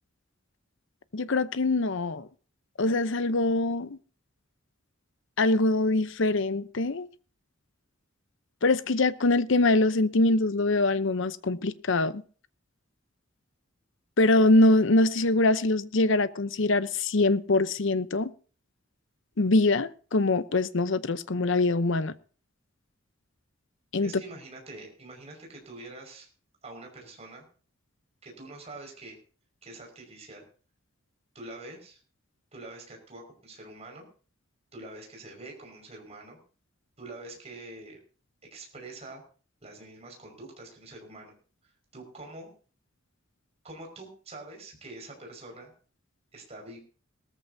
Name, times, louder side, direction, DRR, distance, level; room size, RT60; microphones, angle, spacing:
voice 1, 1.1-2.3 2.8-4.0 5.4-7.1 8.6-12.2 14.2-18.3 19.4-22.1 23.9-24.1, left 2 dB, 65° left, 0.8 m, -23 dB
voice 2, 24.0-26.3 26.6-27.4 28.2-29.2 29.6-30.4 31.3-32.0 32.5-34.1 34.7-36.4 37.0-38.0 38.5-39.2 39.6-41.3 41.9-42.5 43.6-45.7 46.3-46.8, right 2 dB, 30° right, 5.5 m, -45 dB
19.0 x 14.0 x 2.8 m
head